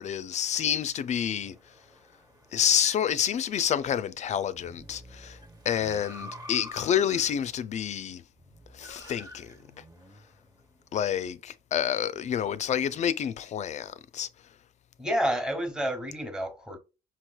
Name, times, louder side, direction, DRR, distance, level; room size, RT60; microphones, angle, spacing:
voice 1, 0.0-1.5 2.5-5.4 5.7-8.2 8.8-9.5 10.9-14.3, left 9 dB, 45° left, 0.4 m, -28 dB
sound 1, 1.2-11.1 12.2-13.0, equal, 20° right, 1.3 m, -49 dB
voice 2, 15.0-16.8, equal, 5° right, 1.1 m, -29 dB
5.8 x 3.1 x 2.3 m
cardioid pair, 110°, 17 cm